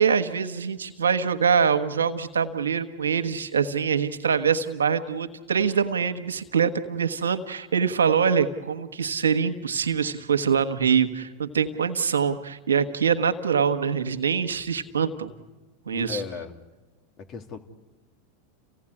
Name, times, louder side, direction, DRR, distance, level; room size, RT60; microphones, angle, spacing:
voice 1, 0.0-15.3 15.9-16.2, right 6 dB, 85° right, 9 dB, 1.4 m, -24 dB
voice 2, 15.9-16.5 17.2-17.6, left 6 dB, 45° left, 6 dB, 3.0 m, -35 dB
30.0 x 16.5 x 9.9 m, 1.2 s
hypercardioid pair, 95°, 0 cm